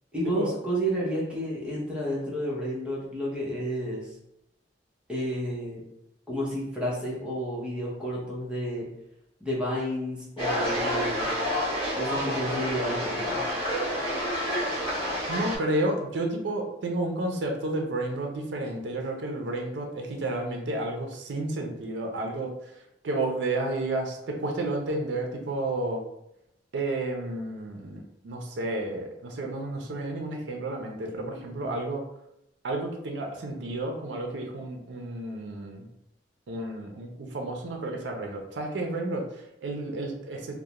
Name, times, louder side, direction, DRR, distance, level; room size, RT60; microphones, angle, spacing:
voice 1, 0.1-4.1 5.1-5.8 6.3-8.9 9.4-11.3 11.9-13.4 31.6-31.7, equal, 5° right, -5 dB, 0.7 m, -31 dB
sound 1, 10.4-15.6, equal, 30° left, 0.9 m, -29 dB
voice 2, 15.3-22.5 23.0-26.0 26.7-32.0 32.6-35.9 36.5-40.6, right 2 dB, 70° right, 2 dB, 0.4 m, -31 dB
2.3 x 2.0 x 2.8 m, 0.80 s
head